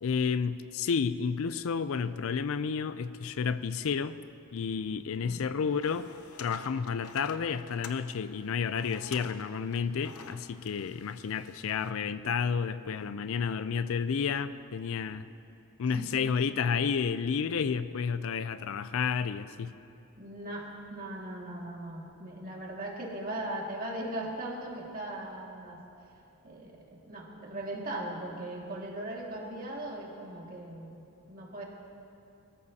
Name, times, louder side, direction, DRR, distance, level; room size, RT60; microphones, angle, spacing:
voice 1, 0.0-4.2 4.5-6.1 6.4-15.3 15.8-19.7, left 6 dB, 65° left, 14 dB, 0.4 m, -31 dB
sound 1, 5.7-11.9, left 5 dB, 85° left, 0.7 m, -49 dB
voice 2, 20.2-25.8 26.4-31.6, right 1 dB, 40° right, -2 dB, 2.0 m, -39 dB
22.5 x 13.5 x 2.8 m, 2.7 s
head